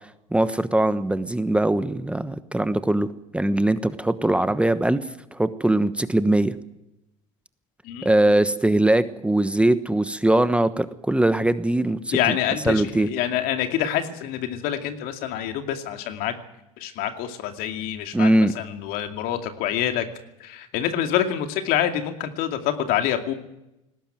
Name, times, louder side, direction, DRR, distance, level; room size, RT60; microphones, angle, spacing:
voice 1, 0.3-3.1 3.3-5.0 5.3-6.5 8.0-12.4 12.6-13.1 18.1-18.5, right 1 dB, 5° right, 12 dB, 1.1 m, -21 dB
voice 2, 12.1-16.3 16.8-18.3 18.5-20.0 20.4-23.3, left 10 dB, 60° left, 6 dB, 2.5 m, -26 dB
20.0 x 17.5 x 9.2 m, 0.89 s
hypercardioid pair, 75°, 17 cm